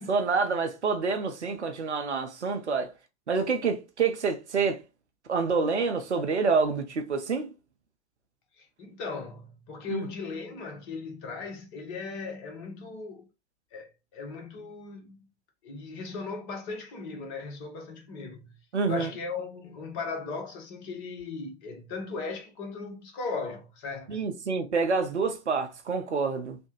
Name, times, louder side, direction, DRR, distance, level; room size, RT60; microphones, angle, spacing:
voice 1, 0.1-2.9 3.3-4.8 5.3-7.5 9.9-10.1 18.7-19.1 24.1-26.6, right 4 dB, 80° right, 0.6 m, -27 dB
voice 2, 8.6-13.3 13.7-15.3 15.6-18.6 18.9-24.2, left 4 dB, 35° left, 1.0 m, -37 dB
3.3 x 2.2 x 2.9 m
figure-of-eight pair, 95°, 34 cm